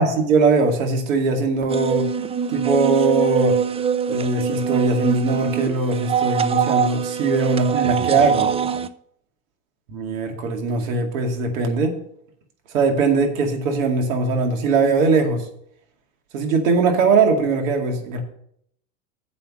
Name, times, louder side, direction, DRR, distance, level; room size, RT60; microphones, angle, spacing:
voice 1, 0.0-2.1 2.5-3.6 4.1-8.5 9.9-12.0 12.7-15.5 16.3-18.2, right 4 dB, 80° right, 3 dB, 2.3 m, -20 dB
sound 1, 1.7-8.9, right 7 dB, 15° right, 0.4 m, -23 dB
7.6 x 5.7 x 7.6 m, 0.68 s
supercardioid pair, 100°, 40 cm